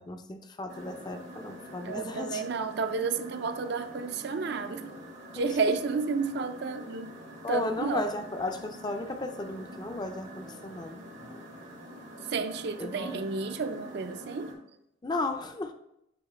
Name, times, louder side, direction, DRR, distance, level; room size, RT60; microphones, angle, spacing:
voice 1, 0.0-2.4 5.3-5.5 7.4-11.0 12.8-13.3 15.0-15.7, left 2 dB, 20° left, 7 dB, 0.4 m, -34 dB
sound 1, 0.7-14.5, equal, 85° right, 2.1 m, -46 dB
voice 2, 1.8-5.0 5.3-7.1 7.5-8.1 12.3-14.5, right 4 dB, 55° right, 9 dB, 0.4 m, -31 dB
8.5 x 2.9 x 4.9 m, 0.81 s
head